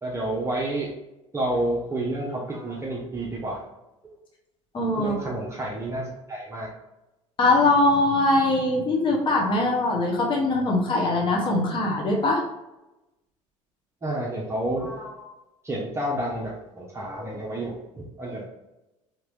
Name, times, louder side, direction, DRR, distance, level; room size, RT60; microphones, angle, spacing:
voice 1, 0.0-0.9 1.3-3.6 5.0-6.7 14.0-15.3 15.6-18.5, right 1 dB, 15° right, -4 dB, 0.8 m, -30 dB
voice 2, 4.7-5.1 7.4-12.4, left 2 dB, 30° left, -2 dB, 1.1 m, -22 dB
4.5 x 2.9 x 2.6 m, 0.97 s
figure-of-eight pair, 65°, 17 cm